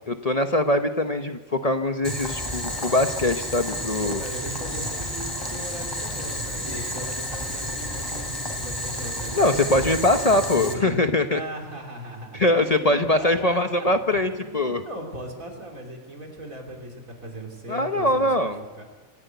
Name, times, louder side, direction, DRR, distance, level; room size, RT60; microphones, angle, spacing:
voice 1, 0.1-4.2 9.4-11.4 12.3-14.8 17.7-18.6, left 1 dB, 35° left, 7 dB, 0.9 m, -22 dB
Boiling, 2.0-10.7, left 1 dB, 15° left, 3.2 m, -31 dB
voice 2, 4.0-10.0 10.5-11.0 11.3-18.5 18.8-18.9, right 1 dB, 80° right, 1 dB, 3.9 m, -38 dB
26.0 x 11.0 x 9.2 m, 1.4 s
omnidirectional pair, 1.4 m